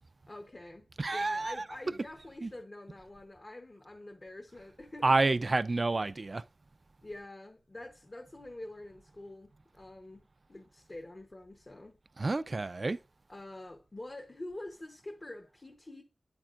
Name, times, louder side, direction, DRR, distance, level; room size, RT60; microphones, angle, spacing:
voice 1, 0.3-5.2 7.0-10.2 10.5-12.0 13.3-16.0, left 1 dB, 40° left, 0.9 m, -46 dB
voice 2, 1.0-1.5 2.4-2.5 5.0-6.4 12.2-13.0, right 3 dB, 50° right, 0.3 m, -28 dB
9.0 x 8.8 x 2.5 m
wide cardioid pair, 80°, 0 cm